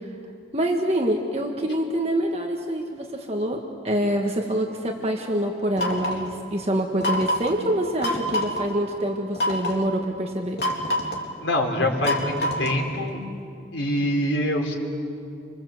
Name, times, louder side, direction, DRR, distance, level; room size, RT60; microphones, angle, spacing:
voice 1, 0.5-10.6, right 1 dB, 35° right, 2 dB, 1.6 m, -26 dB
sound 1, 5.8-6.3 7.0-7.5 8.0-8.6 9.4-9.8 10.6-11.3 12.0-12.9, equal, 60° left, 3.6 m, -26 dB
voice 2, 11.4-13.3 13.7-14.7, left 1 dB, 85° left, 1 dB, 4.2 m, -25 dB
28.5 x 25.5 x 7.9 m, 2.6 s
head